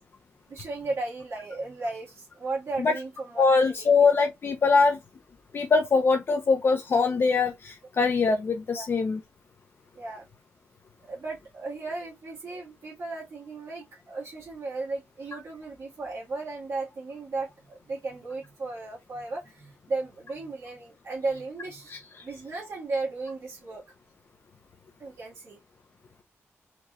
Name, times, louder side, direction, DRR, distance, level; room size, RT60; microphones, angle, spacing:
voice 1, 0.5-3.9 8.7-8.9 10.0-10.3 11.1-22.0 22.2-23.8 25.0-25.6, right 3 dB, 65° right, 2.0 m, -35 dB
voice 2, 3.4-5.0 5.5-9.2, left 4 dB, 50° left, 0.6 m, -22 dB
4.5 x 3.0 x 2.5 m
wide cardioid pair, 130°, 5 cm